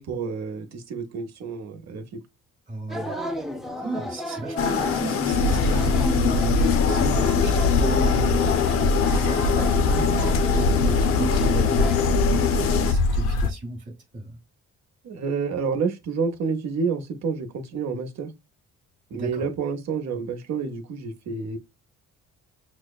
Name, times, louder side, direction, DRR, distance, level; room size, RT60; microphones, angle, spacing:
voice 1, 0.0-2.2 15.0-18.3 19.1-21.6, right 5 dB, 65° right, 0.9 m, -29 dB
voice 2, 2.7-3.2 3.8-14.4 19.1-19.4, right 2 dB, 25° right, 1.0 m, -35 dB
sound 1, 2.9-12.0, left 1 dB, ahead, 0.5 m, -34 dB
sound 2, 4.6-12.9, left 7 dB, 50° left, 0.6 m, -24 dB
sound 3, 5.3-13.5, left 2 dB, 85° left, 0.8 m, -23 dB
6.1 x 2.1 x 2.3 m
cardioid pair, 90°, 30 cm